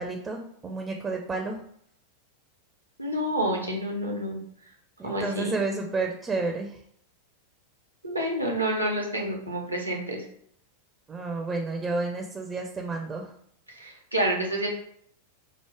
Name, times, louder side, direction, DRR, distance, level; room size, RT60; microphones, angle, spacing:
voice 1, 0.0-1.6 5.0-6.7 11.1-13.3, right 3 dB, 20° right, 3 dB, 0.4 m, -31 dB
voice 2, 3.0-4.4 5.0-5.6 8.0-10.2 13.8-14.7, right 1 dB, 85° right, 1 dB, 0.8 m, -28 dB
4.5 x 2.0 x 3.4 m, 0.67 s
figure-of-eight pair, 90°, 0 cm